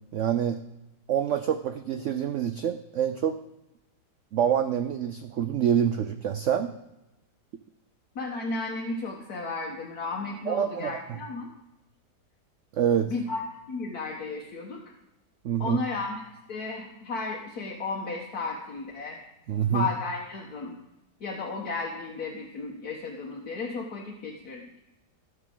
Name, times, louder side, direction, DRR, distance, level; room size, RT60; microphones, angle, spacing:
voice 1, 0.1-0.6 1.1-3.4 4.3-6.7 10.5-11.2 12.7-13.1 15.4-15.8 19.5-19.9, right 9 dB, 70° right, 10 dB, 0.7 m, -26 dB
voice 2, 8.1-11.5 13.0-13.4 13.7-14.8 15.6-16.2 16.5-19.2 19.7-20.7 21.2-24.6, left 3 dB, 60° left, -1 dB, 1.7 m, -34 dB
17.5 x 6.5 x 3.8 m, 0.95 s
omnidirectional pair, 1.8 m